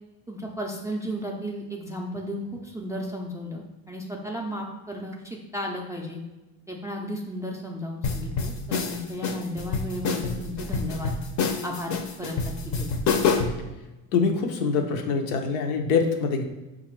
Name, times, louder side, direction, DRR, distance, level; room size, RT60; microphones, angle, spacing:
voice 1, 0.3-6.2 6.7-11.1 11.6-12.9, equal, 10° right, -1 dB, 0.3 m, -34 dB
sound 1, 8.0-13.6, left 5 dB, 45° left, 0.6 m, -27 dB
voice 2, 14.1-16.4, left 5 dB, 90° left, 4 dB, 0.7 m, -24 dB
5.3 x 2.5 x 3.1 m, 1.1 s
supercardioid pair, 100°, 42 cm